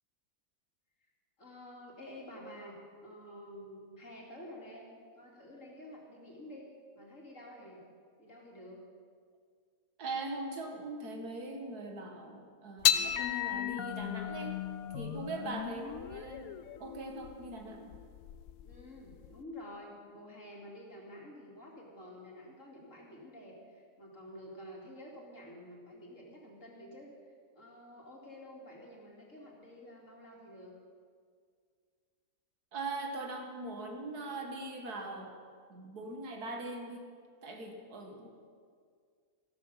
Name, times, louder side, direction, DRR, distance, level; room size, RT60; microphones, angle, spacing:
voice 1, 1.4-2.8 3.0-4.9 5.2-6.7 6.9-7.8 8.2-8.8 18.6-30.8, left 1 dB, 55° left, -2 dB, 3.1 m, -50 dB
voice 2, 10.0-14.6 14.9-16.5 16.8-18.0 32.7-35.3 35.7-37.1 37.4-38.3, right 2 dB, 80° right, 3 dB, 2.2 m, -41 dB
sound 1, 12.8-19.4, left 11 dB, 70° left, 1.0 m, -35 dB
15.0 x 12.5 x 5.8 m, 2.1 s
omnidirectional pair, 1.6 m